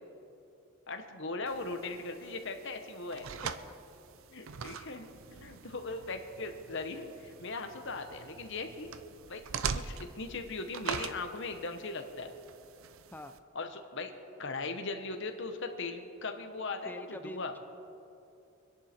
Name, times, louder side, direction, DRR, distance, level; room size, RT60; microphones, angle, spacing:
voice 1, 0.9-3.3 4.3-8.9 9.3-9.4 9.7-12.3 13.5-14.1 14.4-17.5, left 3 dB, 55° left, 6 dB, 1.2 m, -39 dB
sound 1, 1.5-13.4, right 6 dB, 65° right, 0.6 m, -43 dB
voice 2, 3.4-3.8 13.1-13.3 16.8-17.6, left 1 dB, 10° left, 8 dB, 0.5 m, -45 dB
25.0 x 10.5 x 4.5 m, 2.7 s
head